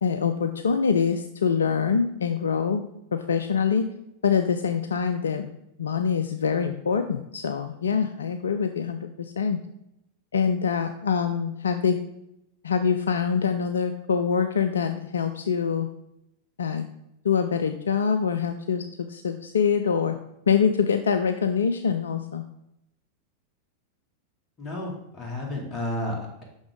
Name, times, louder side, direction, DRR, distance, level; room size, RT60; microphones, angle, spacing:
voice 1, 0.0-3.9 4.2-5.5 5.8-9.6 10.3-12.0 12.6-15.9 16.6-16.9 17.2-20.2 20.5-22.4, left 6 dB, 70° left, 8 dB, 0.4 m, -25 dB
voice 2, 24.6-26.4, left 1 dB, 30° left, -1 dB, 2.1 m, -32 dB
6.1 x 6.0 x 3.6 m, 0.81 s
figure-of-eight pair, 90°, 0 cm